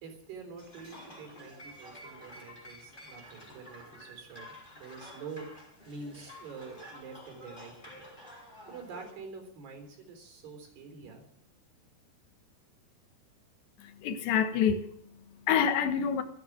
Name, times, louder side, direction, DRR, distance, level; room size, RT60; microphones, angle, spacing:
voice 1, 0.0-4.5 4.8-8.1 8.7-11.2, right 4 dB, 70° right, 5.9 m, -46 dB
sound 1, 0.6-9.1, equal, 10° left, 4.9 m, -50 dB
voice 2, 13.8-16.2, left 8 dB, 80° left, 3.7 m, -28 dB
15.5 x 14.5 x 6.3 m
omnidirectional pair, 5.0 m